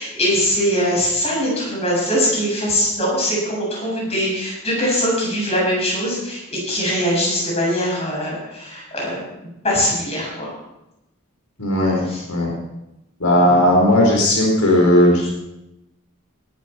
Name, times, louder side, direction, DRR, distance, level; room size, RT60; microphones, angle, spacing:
voice 1, 0.0-9.2 9.6-10.5 12.1-12.2, equal, 30° left, -4 dB, 7.3 m, -21 dB
voice 2, 11.6-12.0 12.3-12.5 13.2-15.3, left 1 dB, 80° left, -1 dB, 4.5 m, -15 dB
19.0 x 12.5 x 4.6 m, 0.91 s
head